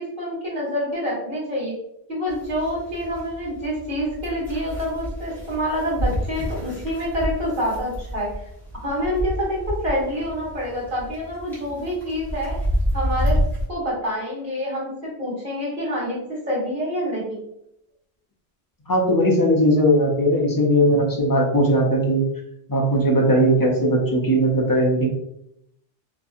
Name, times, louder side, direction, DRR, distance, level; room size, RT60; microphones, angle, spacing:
voice 1, 0.0-1.7 2.1-8.3 8.8-12.5 12.9-13.4 13.7-17.4, equal, 45° right, -6 dB, 1.4 m, -27 dB
sound 1, 2.3-13.7, equal, ahead, 1.0 m, -29 dB
voice 2, 18.9-22.2 22.7-25.1, equal, 35° left, -1 dB, 0.3 m, -18 dB
2.9 x 2.6 x 2.4 m, 0.77 s
omnidirectional pair, 1.0 m